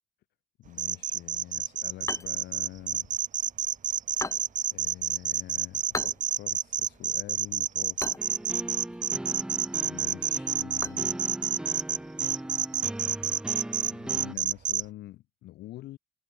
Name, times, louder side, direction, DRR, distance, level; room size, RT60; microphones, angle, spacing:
voice 1, 0.6-3.1 4.7-8.4 9.7-11.2 13.8-16.0, left 16 dB, 75° left, 7.4 m, -45 dB
sound 1, 0.8-14.8, right 9 dB, 50° right, 1.8 m, -28 dB
sound 2, 2.0-12.1, left 3 dB, 20° left, 4.4 m, -43 dB
sound 3, 8.2-14.3, right 1 dB, 5° right, 1.4 m, -39 dB
cardioid pair, 110°, 17 cm